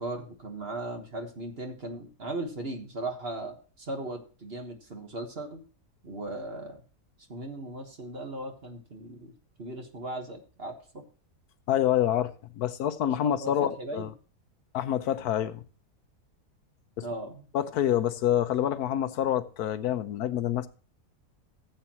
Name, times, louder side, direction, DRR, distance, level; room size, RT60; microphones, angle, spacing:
voice 1, 0.0-5.6 6.0-6.8 7.3-9.3 9.6-11.0 13.2-13.5 13.8-14.1 17.0-17.5, right 2 dB, 40° right, 1.6 m, -37 dB
voice 2, 11.7-14.1 14.7-15.6 17.0-17.1 17.5-20.7, left 11 dB, 80° left, 1.3 m, -27 dB
14.5 x 8.1 x 2.9 m
omnidirectional pair, 1.6 m